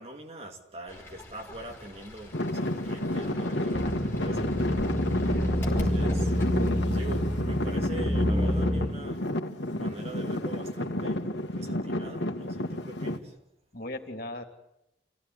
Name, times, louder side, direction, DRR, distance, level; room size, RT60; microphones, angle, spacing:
voice 1, 0.0-4.9 5.7-6.3 6.8-9.3 9.7-11.2 11.5-13.4, right 1 dB, 35° right, 3.0 m, -43 dB
Fowl / Bird, 0.9-6.7, left 1 dB, 15° left, 5.0 m, -43 dB
Traffic noise roadway noise / Engine, 2.3-13.2, left 1 dB, 75° left, 2.0 m, -30 dB
sound 1, 3.7-8.9, equal, 5° right, 2.1 m, -28 dB
voice 2, 5.3-5.9 6.6-6.8 13.7-14.4, left 1 dB, 50° left, 3.2 m, -39 dB
27.5 x 17.0 x 9.8 m
head